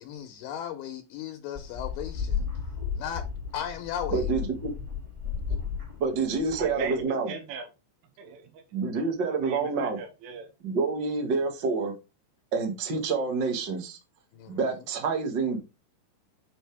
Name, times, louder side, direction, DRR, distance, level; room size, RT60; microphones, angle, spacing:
voice 1, 0.0-2.4 3.0-3.3 3.5-4.3 14.3-14.8, left 9 dB, 75° left, 2.9 m, -36 dB
sound 1, 1.5-7.0, left 6 dB, 35° right, 0.5 m, -34 dB
voice 2, 4.1-4.7 6.0-7.3 8.7-10.0 10.6-11.9 12.5-14.0 14.5-15.6, right 4 dB, 65° right, 1.1 m, -28 dB
voice 3, 6.6-7.7 8.2-8.6 9.2-10.5, right 5 dB, 80° right, 4.3 m, -39 dB
8.7 x 5.6 x 3.5 m
omnidirectional pair, 5.6 m